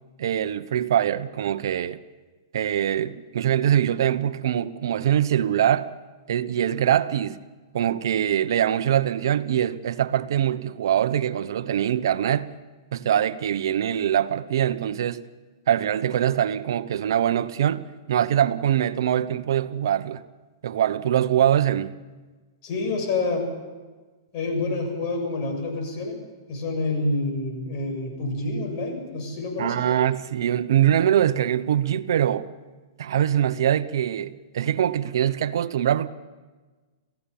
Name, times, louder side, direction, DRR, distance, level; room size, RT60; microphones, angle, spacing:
voice 1, 0.2-2.0 2.5-5.9 6.3-7.4 7.7-12.5 12.9-15.2 15.7-20.2 20.6-21.9 29.6-32.5 33.0-36.1, right 10 dB, 70° right, 0.9 m, -23 dB
voice 2, 22.6-23.5 24.3-26.2 26.5-29.7, left 2 dB, 45° left, 7.3 m, -27 dB
28.5 x 15.5 x 7.2 m
hypercardioid pair, 145°, 2 cm